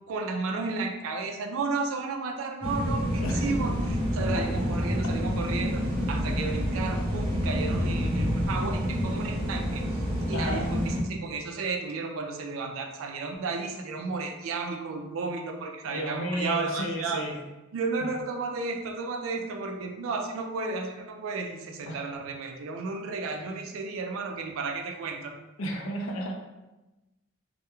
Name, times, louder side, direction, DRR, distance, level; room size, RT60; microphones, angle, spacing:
voice 1, 0.1-3.7 4.1-9.8 10.3-17.2 17.7-25.3, right 4 dB, 70° right, 3 dB, 0.3 m, -33 dB
sound 1, 2.6-11.0, equal, 30° right, 0.8 m, -28 dB
voice 2, 3.2-3.7 4.3-4.4 10.3-10.7 15.8-17.4 18.0-18.1 21.8-22.0 25.6-26.3, equal, 70° left, 1 dB, 0.4 m, -33 dB
2.3 x 2.1 x 2.9 m, 1.0 s
head